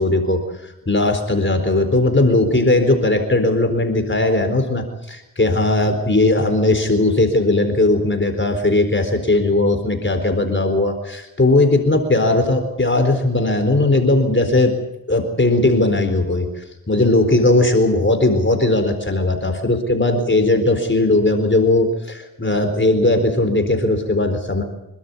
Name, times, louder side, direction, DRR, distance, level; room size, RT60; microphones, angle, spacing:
voice 1, 0.0-14.8 15.1-24.6, left 2 dB, 30° left, 6 dB, 4.1 m, -18 dB
27.0 x 13.0 x 9.7 m, 0.91 s
cardioid pair, 50°, 38 cm